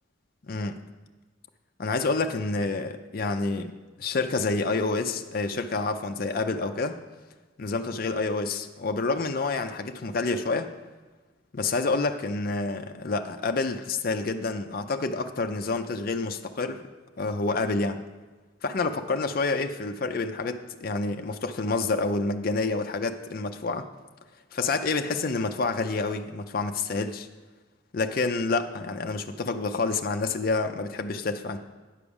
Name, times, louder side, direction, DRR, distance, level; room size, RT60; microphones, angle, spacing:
voice 1, 0.4-0.8 1.8-3.7 4.0-7.0 7.6-10.7 11.5-16.8 17.2-18.0 18.6-23.9 24.5-27.3 27.9-31.6, left 3 dB, 45° left, 6 dB, 0.5 m, -28 dB
9.8 x 4.9 x 7.0 m, 1.3 s
head